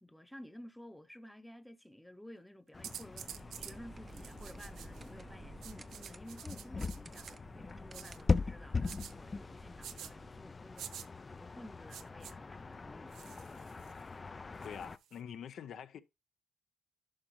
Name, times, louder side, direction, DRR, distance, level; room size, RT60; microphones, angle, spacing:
voice 1, 0.0-13.9, equal, 5° left, 0.8 m, -53 dB
sound 1, 2.7-15.0, left 4 dB, 30° left, 0.4 m, -40 dB
sound 2, 2.8-3.8 4.1-5.1 5.6-7.3 7.9-8.2 8.8-9.1 9.8-10.1 10.8-11.1 11.9-12.3 13.1-14.0 14.6-15.2, right 10 dB, 75° right, 0.5 m, -48 dB
sound 3, 3.1-10.4, right 3 dB, 30° right, 0.5 m, -55 dB
voice 2, 14.6-16.0, left 8 dB, 70° left, 0.7 m, -45 dB
11.0 x 5.1 x 3.1 m
cardioid pair, 90°, 0 cm